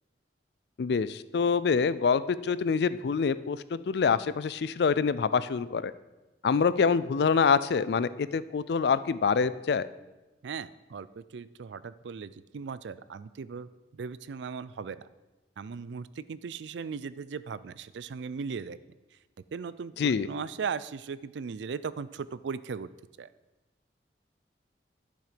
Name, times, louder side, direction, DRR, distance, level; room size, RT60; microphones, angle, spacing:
voice 1, 0.8-5.9 6.4-9.9 20.0-20.3, left 5 dB, 65° left, 15 dB, 0.4 m, -26 dB
voice 2, 10.4-15.1 15.6-18.8 19.5-22.9 23.2-23.3, right 5 dB, 85° right, 16 dB, 0.4 m, -38 dB
11.0 x 6.2 x 5.1 m, 1.1 s
head